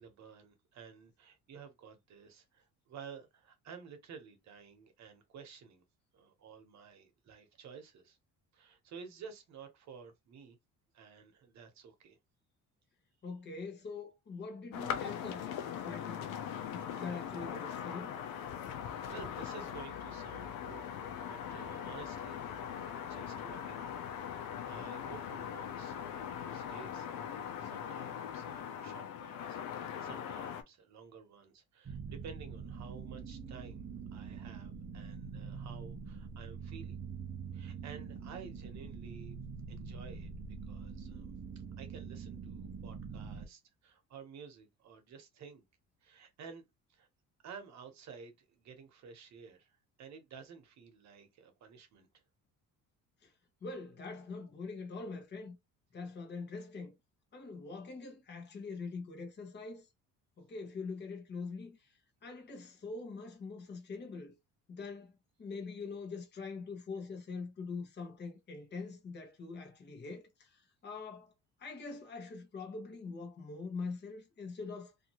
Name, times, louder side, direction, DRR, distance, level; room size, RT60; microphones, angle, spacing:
voice 1, 0.0-5.8 6.1-8.2 8.5-10.6 10.9-12.2 18.6-22.6 23.0-24.1 24.6-27.1 27.6-37.0 37.5-39.4 39.7-41.3 41.8-45.6 46.0-46.6 46.9-47.1 47.4-52.2, right 6 dB, 55° right, 0.9 m, -52 dB
voice 2, 13.2-15.5 15.8-16.3 16.7-18.1 53.2-53.3 53.6-55.6 55.9-57.0 57.3-59.9 60.4-61.9 62.2-64.3 64.7-65.1 65.4-71.3 71.6-74.9, left 4 dB, 30° left, 1.0 m, -43 dB
sound 1, 14.7-30.6, left 8 dB, 85° left, 0.6 m, -41 dB
sound 2, 31.9-43.5, right 5 dB, 30° right, 0.5 m, -44 dB
2.7 x 2.5 x 2.9 m
cardioid pair, 120°, 33 cm